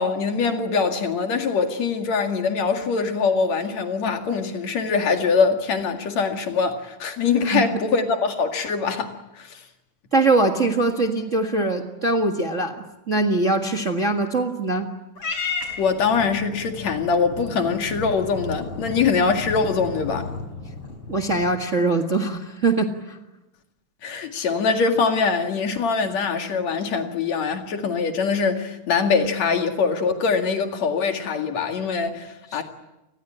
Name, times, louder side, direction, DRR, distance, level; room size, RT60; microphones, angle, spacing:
voice 1, 0.0-9.6 15.8-20.3 24.0-32.6, left 5 dB, 60° left, 3.3 m, -23 dB
voice 2, 10.1-14.9 21.1-23.2 32.5-32.6, right 2 dB, 30° right, 1.4 m, -22 dB
Purr / Meow, 15.1-21.6, left 4 dB, 45° left, 5.4 m, -34 dB
28.5 x 20.0 x 8.7 m
omnidirectional pair, 3.5 m